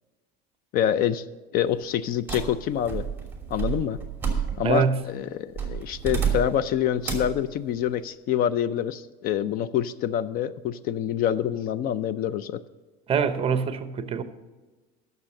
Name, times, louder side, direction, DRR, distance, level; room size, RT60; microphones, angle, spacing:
voice 1, 0.7-1.2 1.5-3.0 3.5-4.0 4.6-12.6, left 10 dB, 50° left, 0.5 m, -26 dB
sound 1, 2.3-4.9 5.5-6.7 7.0-7.4, right 7 dB, 10° right, 2.7 m, -30 dB
voice 2, 4.6-5.0 13.1-14.2, right 6 dB, 30° right, 0.9 m, -24 dB
11.5 x 6.8 x 6.5 m
cardioid pair, 140°, 20 cm